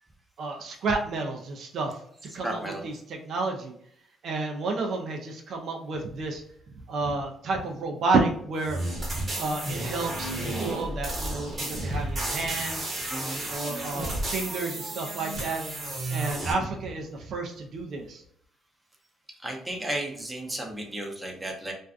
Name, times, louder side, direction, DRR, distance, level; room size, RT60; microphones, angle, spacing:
voice 1, 0.4-1.9 2.3-3.7 4.2-6.4 6.9-8.8 9.4-12.9 13.5-15.6 16.1-18.2, right 3 dB, 60° right, 1 dB, 0.4 m, -30 dB
voice 2, 2.4-2.9 13.1-13.4 19.4-21.7, right 1 dB, 10° right, 1 dB, 0.6 m, -34 dB
sound 1, 8.6-16.5, right 1 dB, 35° right, 0.9 m, -32 dB
2.4 x 2.2 x 2.4 m, 0.65 s
cardioid pair, 90°, 0 cm